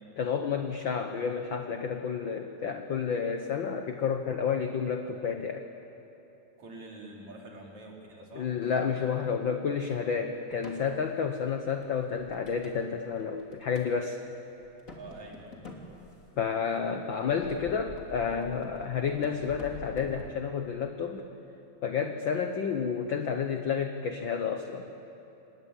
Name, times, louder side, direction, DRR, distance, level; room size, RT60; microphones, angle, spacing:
voice 1, 0.2-5.7 8.3-14.2 16.4-21.2 21.8-24.9, left 6 dB, 75° left, 5 dB, 1.1 m, -30 dB
voice 2, 6.6-8.5 14.9-15.6, right 2 dB, 55° right, -1 dB, 4.9 m, -46 dB
sound 1, 10.5-10.9 11.5-12.8 13.2-13.9 14.2-14.3 14.6-16.6 17.2-20.2, left 1 dB, 25° left, 2.9 m, -48 dB
27.0 x 20.5 x 8.6 m, 3.0 s
omnidirectional pair, 3.8 m